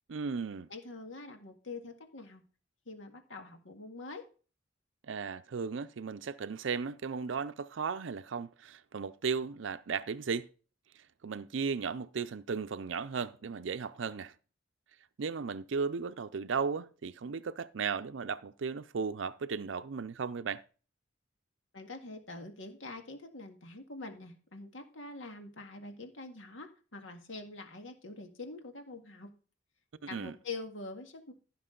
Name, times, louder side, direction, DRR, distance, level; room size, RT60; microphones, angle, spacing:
voice 1, 0.1-0.7 5.1-10.5 11.2-14.3 15.2-20.6 30.1-30.3, right 5 dB, 75° right, 0.5 m, -35 dB
voice 2, 0.7-2.4 2.9-4.3 21.7-29.3 30.1-31.3, left 3 dB, 80° left, 1.8 m, -45 dB
15.5 x 6.0 x 3.8 m
head